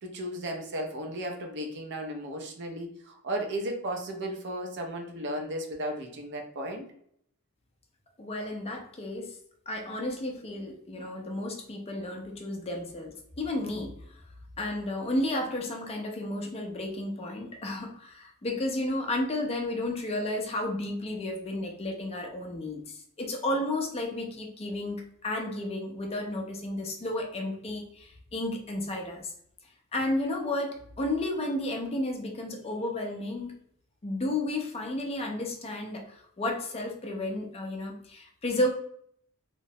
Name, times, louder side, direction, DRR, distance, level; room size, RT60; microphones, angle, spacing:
voice 1, 0.0-6.9, right 1 dB, 55° right, 2 dB, 0.5 m, -35 dB
voice 2, 8.2-9.3 9.7-14.2 14.6-29.3 29.9-33.5 34.0-38.7, left 1 dB, 25° left, 1 dB, 0.4 m, -32 dB
2.9 x 2.0 x 2.6 m, 0.67 s
head